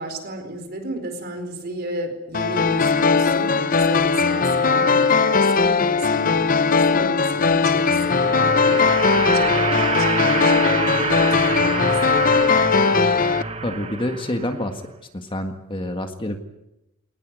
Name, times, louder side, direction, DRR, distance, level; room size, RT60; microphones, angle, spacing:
voice 1, 0.0-12.5, right 1 dB, 45° right, 7 dB, 4.4 m, -33 dB
sound 1, 2.3-13.4, left 4 dB, 40° left, 0.8 m, -19 dB
sound 2, 7.6-14.7, right 3 dB, 25° right, 1.1 m, -27 dB
voice 2, 13.6-14.8 15.1-16.4, left 1 dB, 25° left, 6 dB, 1.7 m, -27 dB
22.0 x 19.5 x 9.6 m, 0.89 s
head